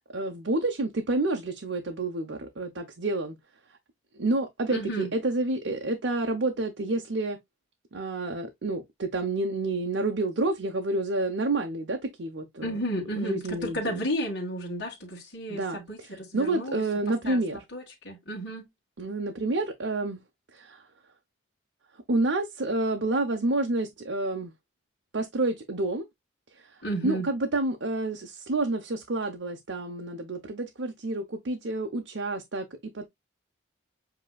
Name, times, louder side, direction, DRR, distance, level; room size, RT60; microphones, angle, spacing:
voice 1, 0.1-3.4 4.1-7.4 7.9-12.8 13.2-14.0 15.5-17.6 19.0-20.2 20.5-20.9 22.1-24.5 25.1-26.1 26.6-33.1, right 2 dB, 65° right, 0.8 m, -29 dB
voice 2, 4.7-5.1 12.6-16.8 17.3-17.4 17.7-18.7 26.8-27.3, equal, 60° left, 1.9 m, -32 dB
7.5 x 3.0 x 2.3 m
head